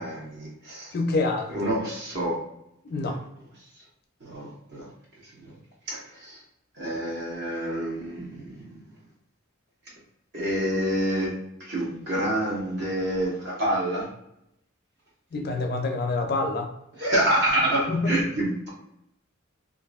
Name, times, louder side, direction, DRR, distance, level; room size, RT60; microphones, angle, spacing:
voice 1, 0.0-0.9 1.5-2.4 3.0-3.2 4.2-4.8 5.3-5.5 5.9-6.4 6.8-8.8 10.3-14.1 17.0-18.7, right 1 dB, 55° right, -4 dB, 1.0 m, -27 dB
voice 2, 0.9-1.8 2.8-3.2 15.3-16.7 17.9-18.1, left 3 dB, 50° left, 3 dB, 0.4 m, -27 dB
2.7 x 2.5 x 2.3 m, 0.79 s
head